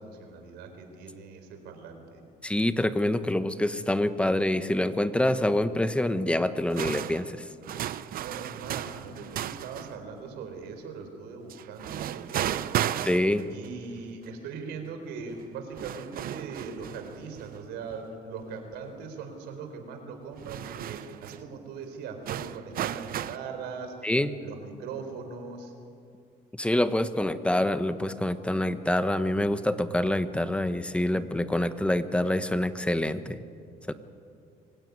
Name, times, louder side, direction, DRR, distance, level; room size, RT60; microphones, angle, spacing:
voice 1, 0.0-2.2 8.1-12.9 13.5-24.1 24.4-25.7, right 5 dB, 85° right, 5 dB, 4.1 m, -40 dB
voice 2, 2.4-7.4 13.0-13.4 24.0-24.4 26.6-33.4 33.9-34.0, left 1 dB, 5° left, 11 dB, 1.1 m, -26 dB
sound 1, 6.7-10.0 11.5-13.7 14.2-14.3 15.4-15.5 15.7-18.0 18.4-18.5 20.3-21.4 22.3-23.4, right 11 dB, 60° right, 0.8 m, -34 dB
25.0 x 16.5 x 9.5 m, 2.4 s
cardioid pair, 110°, 17 cm